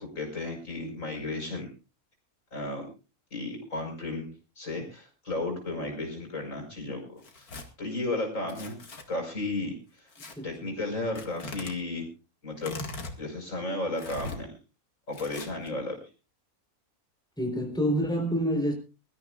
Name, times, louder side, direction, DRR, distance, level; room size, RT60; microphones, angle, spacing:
voice 1, 0.0-1.7 2.5-2.9 3.3-4.3 4.6-7.5 7.8-8.8 9.1-9.8 10.4-12.1 12.4-12.8 13.2-14.5 15.1-16.0, left 2 dB, 60° left, 5.5 m, -33 dB
Tearing, 7.2-7.7 8.5-9.0 10.1-10.3 11.2-11.7 12.6-13.2 14.0-14.4 15.1-15.7, left 3 dB, 80° left, 2.6 m, -40 dB
voice 2, 10.4-10.7 17.4-18.7, equal, 5° left, 4.0 m, -28 dB
23.5 x 14.0 x 2.5 m
omnidirectional pair, 1.5 m